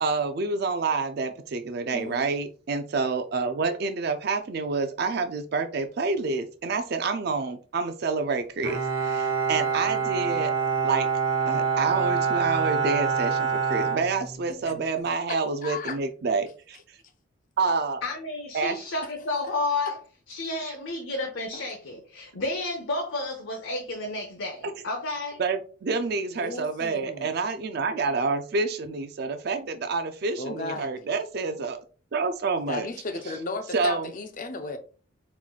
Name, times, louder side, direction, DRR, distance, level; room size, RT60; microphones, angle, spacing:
voice 1, 0.0-10.5 10.8-11.1 11.5-16.8 17.6-18.0 18.5-18.8 24.6-24.7 25.4-31.8 32.1-32.9 33.7-34.1, right 4 dB, 50° right, 0.4 m, -28 dB
voice 2, 1.9-2.3 14.5-14.8 15.3-16.0 19.4-19.5 21.5-21.6 26.3-27.3 30.4-30.9 32.7-34.8, left 3 dB, 40° left, 0.5 m, -35 dB
Bowed string instrument, 8.6-14.8, right 5 dB, 80° right, 0.9 m, -26 dB
voice 3, 18.0-20.0 20.3-25.4, left 2 dB, 70° left, 0.8 m, -31 dB
4.4 x 4.2 x 2.3 m
head